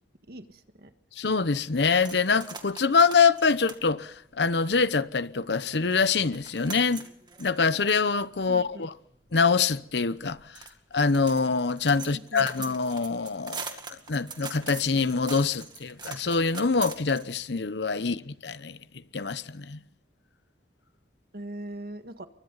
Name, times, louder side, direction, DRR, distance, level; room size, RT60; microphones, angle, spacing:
voice 1, 0.3-0.9 8.5-8.9 12.0-12.5 21.3-22.3, right 1 dB, 60° right, 1.7 m, -41 dB
voice 2, 1.2-7.1 7.4-8.9 9.3-10.4 10.9-13.7 14.1-18.8 19.1-19.8, left 5 dB, 75° left, 0.9 m, -25 dB
sound 1, 1.9-5.1 5.6-5.7 5.9-17.6, right 5 dB, 25° right, 2.2 m, -43 dB
29.0 x 24.0 x 4.1 m
head